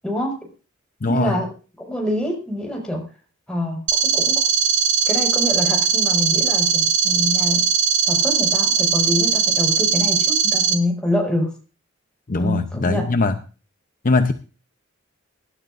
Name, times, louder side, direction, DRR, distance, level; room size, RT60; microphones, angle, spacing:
voice 1, 0.0-0.3 1.1-1.5 1.8-3.1 3.5-4.3 5.1-7.7 8.1-11.5 12.4-13.0, left 1 dB, 5° left, 1 dB, 5.8 m, -25 dB
voice 2, 1.0-1.4 12.3-13.4 14.0-14.3, left 3 dB, 45° left, 8 dB, 0.7 m, -20 dB
sound 1, 3.9-10.7, right 7 dB, 40° right, 2.1 m, -19 dB
24.0 x 12.0 x 2.6 m, 0.35 s
head